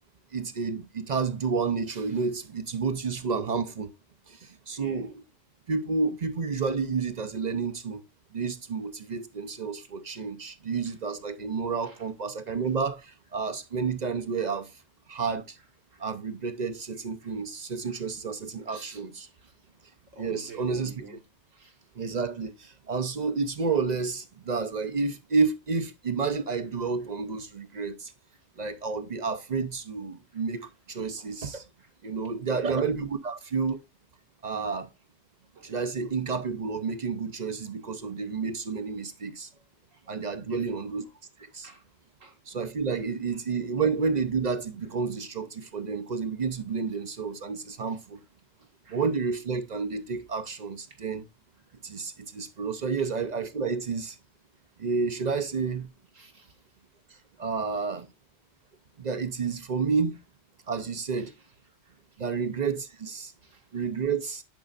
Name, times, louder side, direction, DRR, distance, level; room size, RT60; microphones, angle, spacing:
voice 1, 0.3-3.9 4.3-5.2 5.7-8.0 8.3-14.7 15.1-15.6 16.0-19.3 20.2-21.2 21.9-28.1 28.6-31.6 32.0-33.8 34.4-34.9 35.6-39.5 40.1-41.0 41.4-41.7 42.5-48.2 48.9-51.3 51.8-54.2 54.8-55.9 57.4-58.1 59.0-60.2 60.7-61.3 62.2-63.3 63.7-64.4, right 5 dB, 45° right, 0.6 m, -30 dB
voice 2, 4.8-5.1 10.9-11.0 11.8-12.1 12.5-12.6 15.9-16.1 17.2-17.3 17.9-18.0 18.7-19.0 19.3-19.5 20.1-21.2 21.5-21.8 30.3-30.7 31.2-31.3 31.8-31.9 32.5-32.9 35.6-35.8 39.9-40.0 40.5-40.9 41.6-41.8 42.2-42.4 47.9-48.0 48.8-49.0 53.0-53.1 56.1-56.6 57.1-57.2 61.2-61.3 61.8-62.4 63.4-63.8, right 4 dB, 85° right, 2.3 m, -50 dB
10.5 x 4.9 x 2.4 m
omnidirectional pair, 1.3 m